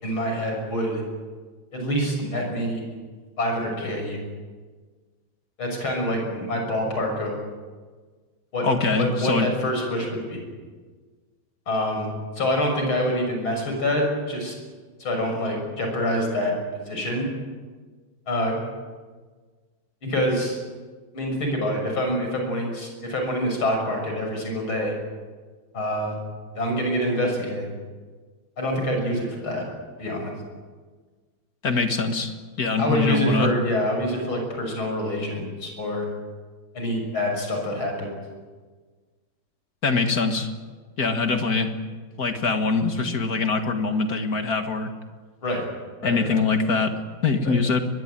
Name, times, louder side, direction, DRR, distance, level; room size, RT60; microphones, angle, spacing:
voice 1, 0.0-1.0 1.7-3.0 3.4-4.2 5.6-7.4 8.5-8.7 9.0-10.5 11.7-12.1 12.4-14.6 15.0-16.5 16.9-17.3 18.3-18.6 20.0-20.6 21.1-24.9 25.7-26.2 26.6-27.7 28.6-29.7 30.0-30.3 32.8-36.1 36.7-38.1 45.4-45.7 46.0-46.4 47.5-47.6, equal, 80° left, 2 dB, 7.4 m, -26 dB
voice 2, 8.6-9.5 31.6-33.5 39.8-40.5 41.0-41.7 42.2-44.9 46.0-47.8, left 4 dB, 45° left, 6 dB, 2.2 m, -23 dB
22.5 x 22.0 x 9.1 m, 1.5 s
omnidirectional pair, 2.2 m